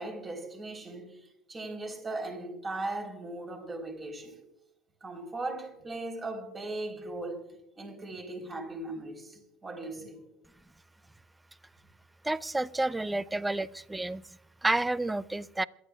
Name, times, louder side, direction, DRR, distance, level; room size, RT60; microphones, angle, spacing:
voice 1, 0.0-4.4 5.0-7.4 7.8-10.2, right 2 dB, 30° right, 4.0 m, -38 dB
voice 2, 12.2-14.2 14.6-15.6, right 2 dB, 10° right, 0.5 m, -30 dB
27.0 x 11.5 x 2.4 m
hypercardioid pair, 80°, 0 cm